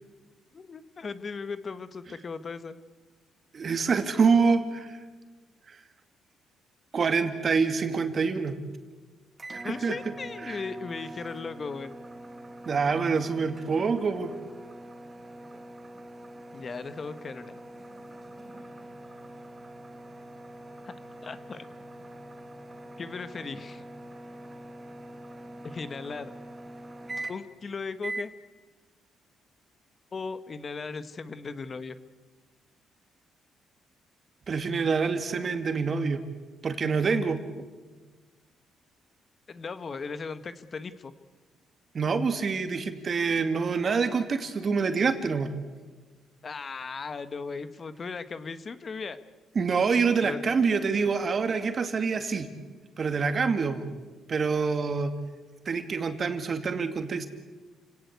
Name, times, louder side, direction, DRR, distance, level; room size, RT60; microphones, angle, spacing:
voice 1, 0.5-2.8 9.6-11.9 16.5-17.5 20.8-20.9 21.2-21.7 23.0-23.8 25.6-26.3 27.3-28.3 30.1-32.0 39.5-41.1 46.4-49.2 50.2-50.4, left 4 dB, 40° left, 12 dB, 1.4 m, -37 dB
voice 2, 3.5-5.0 6.9-8.5 9.5-10.0 10.4-10.6 12.7-14.3 34.5-36.2 36.6-37.4 41.9-45.5 49.6-52.5 53.0-53.9 54.3-55.1 55.7-57.3, right 5 dB, 45° right, 8 dB, 2.5 m, -26 dB
sound 1, 9.4-27.6 28.0-28.3, right 1 dB, 25° right, 2.5 m, -43 dB
29.5 x 17.5 x 8.3 m, 1.3 s
cardioid pair, 90°, 0 cm